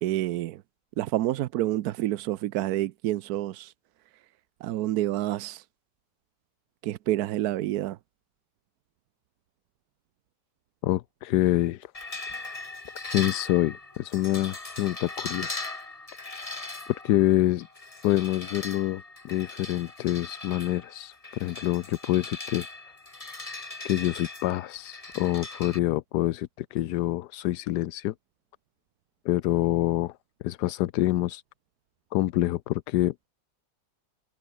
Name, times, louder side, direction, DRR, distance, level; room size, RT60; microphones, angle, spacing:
voice 1, 0.0-0.6 1.0-3.7 4.1-4.2 4.6-5.7 6.8-8.0, right 14 dB, 70° right, 1.0 m, -28 dB
voice 2, 10.8-11.9 13.1-15.6 16.9-17.7 18.0-22.7 23.8-28.1 29.2-30.2 30.4-31.4 32.1-33.1, left 15 dB, 75° left, 1.2 m, -26 dB
sound 1, 11.9-25.8, left 2 dB, 20° left, 1.9 m, -39 dB
omnidirectional pair, 1.9 m